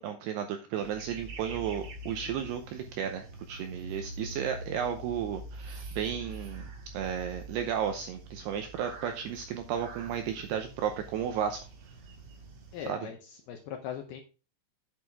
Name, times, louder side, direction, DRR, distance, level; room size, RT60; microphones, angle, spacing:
voice 1, 0.0-6.7 6.9-11.6 12.9-13.1, right 8 dB, 90° right, 6 dB, 2.4 m, -33 dB
sound 1, 0.8-12.9, right 1 dB, 75° right, 1.4 m, -45 dB
voice 2, 12.7-14.2, left 9 dB, 80° left, 4 dB, 2.3 m, -40 dB
8.9 x 8.4 x 3.5 m, 0.32 s
omnidirectional pair, 5.6 m